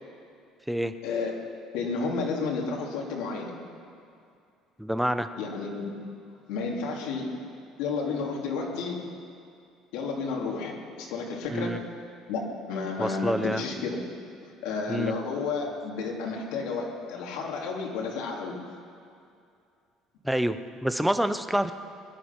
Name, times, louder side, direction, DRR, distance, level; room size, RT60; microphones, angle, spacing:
voice 1, 1.0-1.4 1.7-3.5 5.4-6.0 6.5-7.4 7.8-9.0 9.9-11.9 12.3-14.0 14.6-18.6, left 4 dB, 80° left, -1 dB, 2.7 m, -31 dB
voice 2, 4.8-5.3 11.5-11.8 13.0-13.6 14.9-15.1 20.2-21.7, right 1 dB, ahead, 10 dB, 0.5 m, -27 dB
21.5 x 11.5 x 5.9 m, 2.5 s
cardioid pair, 165°, 0 cm